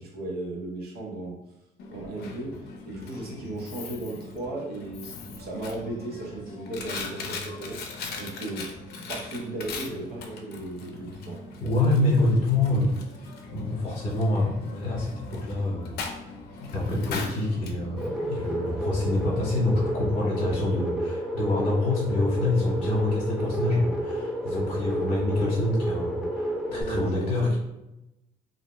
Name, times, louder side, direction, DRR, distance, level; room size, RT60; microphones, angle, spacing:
voice 1, 0.1-1.4 1.9-2.5 2.8-8.7 9.1-11.4 26.7-27.6, right 2 dB, 65° right, -1 dB, 0.8 m, -36 dB
Coin (dropping), 1.8-19.6, left 3 dB, 70° left, 0.5 m, -40 dB
voice 2, 11.6-13.0 13.5-16.2 16.6-27.6, left 2 dB, 50° left, -5 dB, 0.9 m, -26 dB
sound 1, 18.0-26.8, right 1 dB, 5° right, 0.4 m, -31 dB
2.7 x 2.0 x 3.0 m, 0.91 s
cardioid pair, 110°, 17 cm